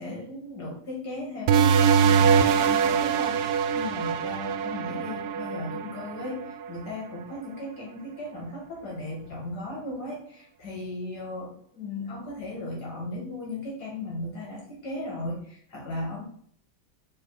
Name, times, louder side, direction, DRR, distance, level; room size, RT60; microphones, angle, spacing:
voice 1, 0.0-16.2, left 1 dB, 60° left, -3 dB, 2.5 m, -36 dB
sound 1, 1.5-6.7, right 7 dB, 75° right, 1.1 m, -23 dB
5.1 x 4.9 x 4.1 m, 0.62 s
omnidirectional pair, 2.0 m